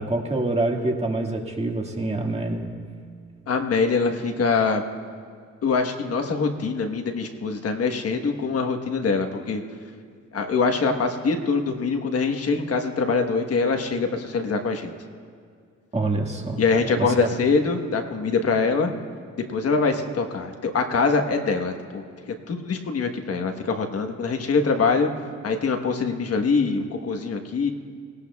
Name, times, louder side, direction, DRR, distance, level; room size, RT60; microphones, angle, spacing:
voice 1, 0.0-2.7 15.9-17.3, right 2 dB, 20° right, 1 dB, 1.9 m, -26 dB
voice 2, 3.5-4.8 5.6-9.6 10.3-14.9 16.6-18.9 19.5-22.0 22.5-25.1 25.4-27.7, left 4 dB, 50° left, 5 dB, 1.3 m, -23 dB
18.5 x 18.0 x 2.4 m, 2.2 s
cardioid pair, 90°, 30 cm